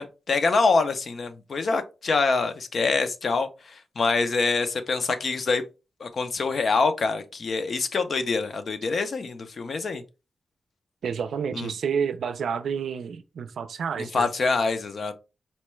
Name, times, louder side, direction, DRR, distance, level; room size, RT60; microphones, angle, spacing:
voice 1, 0.0-5.6 6.0-10.0 11.5-11.7 14.0-15.1, left 4 dB, 50° left, 0.5 m, -25 dB
voice 2, 11.0-14.3, right 6 dB, 80° right, 0.4 m, -29 dB
4.3 x 2.2 x 3.1 m
wide cardioid pair, 135°, 0 cm